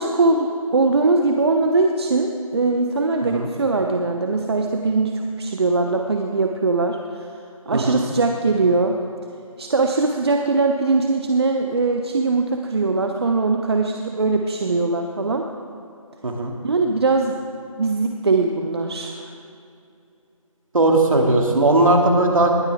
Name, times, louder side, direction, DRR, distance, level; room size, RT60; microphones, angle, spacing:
voice 1, 0.0-7.0 7.7-8.9 9.6-15.5 16.6-17.4 17.8-19.2, right 3 dB, 45° right, 4 dB, 0.8 m, -21 dB
voice 2, 7.7-8.0 16.2-16.5 20.7-22.5, right 2 dB, 70° right, 1 dB, 2.4 m, -18 dB
20.0 x 11.0 x 3.5 m, 2.6 s
figure-of-eight pair, 165°, 18 cm